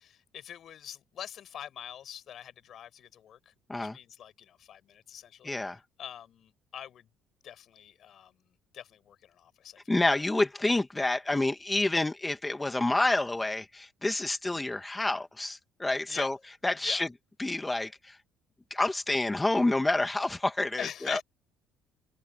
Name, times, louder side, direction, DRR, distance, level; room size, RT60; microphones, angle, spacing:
voice 1, 0.0-7.1 7.4-8.4 8.7-9.9 16.1-16.3 16.8-17.1 20.8-21.2, left 10 dB, 60° left, 6.9 m, -44 dB
voice 2, 5.4-5.8 9.9-16.4 16.6-17.1 17.4-18.2 18.7-21.2, left 2 dB, 15° left, 2.3 m, -28 dB
supercardioid pair, 85°, 0 cm